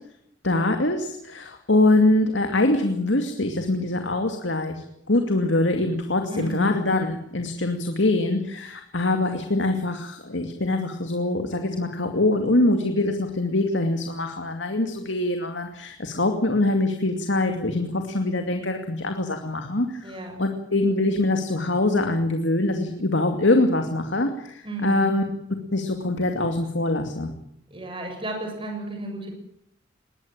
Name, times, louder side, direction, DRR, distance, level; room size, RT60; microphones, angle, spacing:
voice 1, 0.4-25.2 25.7-27.3, left 2 dB, 75° left, 5 dB, 2.4 m, -24 dB
voice 2, 6.3-6.7 20.0-20.4 24.6-25.0 27.7-29.3, right 1 dB, 30° right, 3 dB, 6.8 m, -33 dB
21.5 x 19.0 x 9.0 m, 0.75 s
head